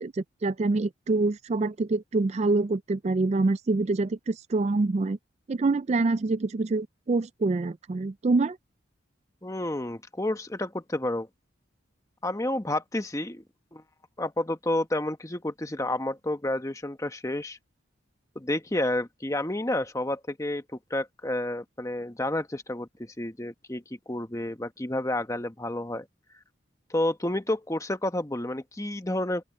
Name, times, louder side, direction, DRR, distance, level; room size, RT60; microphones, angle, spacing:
voice 1, 0.0-5.2 5.5-8.6, right 3 dB, 35° right, 0.4 m, -26 dB
voice 2, 9.4-11.3 12.2-13.4 13.7-13.8 14.2-17.6 18.3-20.6 20.9-26.1 26.9-29.4, left 1 dB, 15° left, 1.0 m, -30 dB
open air
head